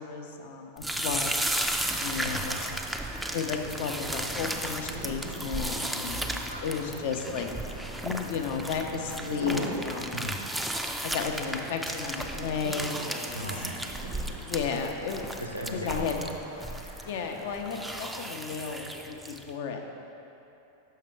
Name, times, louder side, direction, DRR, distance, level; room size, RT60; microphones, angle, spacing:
voice 1, 0.0-1.4 2.0-2.5 3.3-7.5 8.0-10.2 11.0-13.5 14.5-15.4 15.7-16.2 17.0-19.8, left 6 dB, 50° left, 4 dB, 0.5 m, -33 dB
sound 1, 0.8-19.5, right 1 dB, 5° right, 0.3 m, -35 dB
voice 2, 2.2-2.8 6.4-6.8 10.1-10.4 13.3-13.8 15.4-16.3, equal, 90° right, 1 dB, 0.6 m, -38 dB
sound 2, 3.1-18.1, right 1 dB, 85° left, 1.1 m, -43 dB
6.5 x 5.5 x 3.2 m, 2.9 s
figure-of-eight pair, 90°, 0 cm